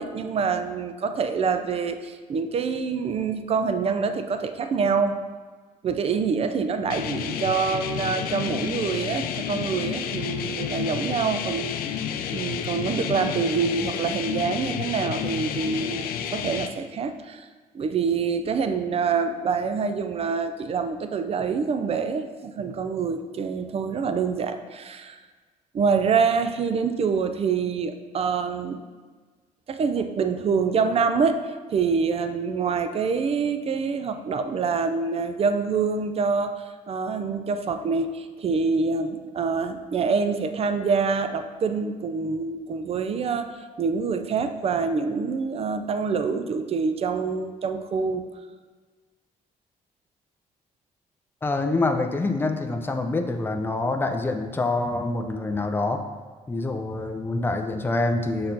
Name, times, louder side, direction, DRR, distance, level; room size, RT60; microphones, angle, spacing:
voice 1, 0.0-5.2 5.8-11.8 12.3-17.5 17.7-25.2 25.7-28.8 29.7-48.2, right 5 dB, 40° right, 8 dB, 0.5 m, -26 dB
sound 1, 6.9-16.7, left 8 dB, 85° left, 0.4 m, -30 dB
voice 2, 51.4-56.0 56.5-58.5, left 2 dB, 15° left, 5 dB, 0.5 m, -26 dB
6.4 x 4.2 x 3.9 m, 1.4 s
cardioid pair, 105°, 15 cm